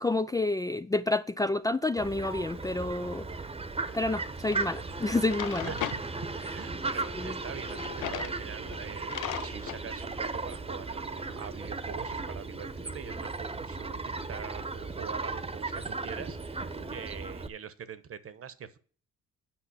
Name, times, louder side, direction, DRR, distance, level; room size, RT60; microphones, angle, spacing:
voice 1, 0.0-3.3 3.9-5.7 7.2-7.4, left 2 dB, 10° left, 0.4 m, -29 dB
Fowl, 2.0-17.5, right 3 dB, 20° right, 1.0 m, -36 dB
Drawer open or close, 4.5-4.6 5.1-6.0 7.6-8.4 8.7-8.8 9.1-9.8, left 16 dB, 85° left, 0.5 m, -37 dB
voice 2, 5.6-18.8, right 7 dB, 50° right, 1.1 m, -43 dB
9.1 x 5.4 x 6.9 m
cardioid pair, 90°, 30 cm